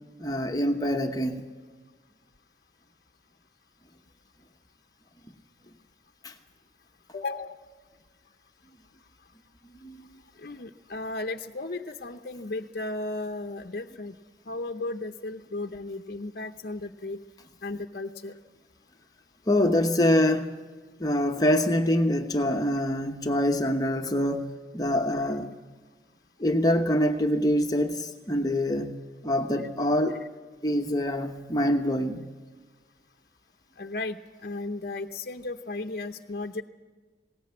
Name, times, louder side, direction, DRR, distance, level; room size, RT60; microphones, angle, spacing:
voice 1, 0.2-1.4 6.2-6.3 9.6-10.0 19.5-20.5 21.0-24.5 24.7-25.5 26.4-28.9 29.2-30.2 30.6-32.3, left 1 dB, 20° left, 1.0 m, -25 dB
voice 2, 7.1-7.6 10.4-14.2 14.5-17.2 17.6-18.3 33.8-36.6, left 2 dB, 55° left, 0.7 m, -35 dB
21.0 x 18.0 x 8.5 m
head